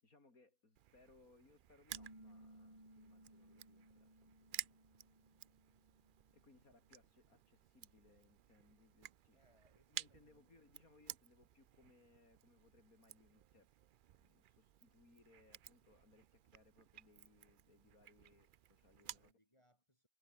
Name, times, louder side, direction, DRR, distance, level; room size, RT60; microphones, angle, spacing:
voice 1, 0.0-4.8 6.3-9.4 9.9-13.7 14.2-19.3, left 3 dB, 90° left, 4.8 m, -69 dB
Crushing, 0.8-19.3, right 11 dB, 70° right, 0.5 m, -55 dB
sound 1, 1.9-7.3, right 1 dB, 25° right, 6.1 m, -62 dB
voice 2, 9.3-10.7 18.9-20.1, equal, 20° left, 7.2 m, -75 dB
omnidirectional pair, 1.5 m